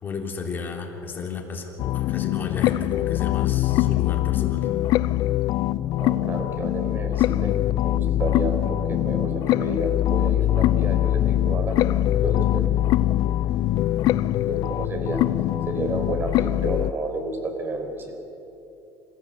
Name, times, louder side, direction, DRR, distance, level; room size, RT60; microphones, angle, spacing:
voice 1, 0.0-4.7, left 5 dB, 25° left, 1 dB, 3.3 m, -33 dB
sound 1, 1.8-16.9, left 14 dB, 50° left, 0.5 m, -23 dB
voice 2, 6.0-7.6 7.8-12.7 14.5-15.2 15.7-18.1, right 2 dB, 25° right, 5 dB, 3.9 m, -31 dB
27.5 x 15.0 x 8.1 m, 2.9 s
cardioid pair, 140°, 8 cm